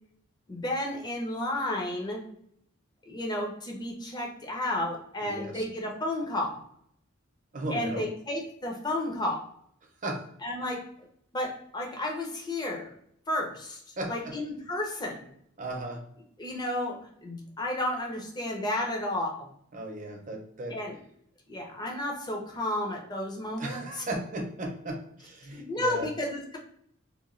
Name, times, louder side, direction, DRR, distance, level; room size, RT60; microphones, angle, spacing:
voice 1, 0.5-2.3 3.1-6.6 7.7-9.4 10.4-10.8 11.3-12.9 13.3-13.8 14.1-15.3 16.4-19.5 20.7-21.0 21.5-24.0 25.5-26.6, left 1 dB, 20° left, 0 dB, 0.6 m, -32 dB
voice 2, 5.2-5.6 7.5-8.0 10.0-10.2 14.0-14.3 15.6-16.0 19.7-20.8 23.6-26.1, right 1 dB, 40° right, 2 dB, 0.6 m, -35 dB
2.9 x 2.2 x 2.5 m, 0.69 s
head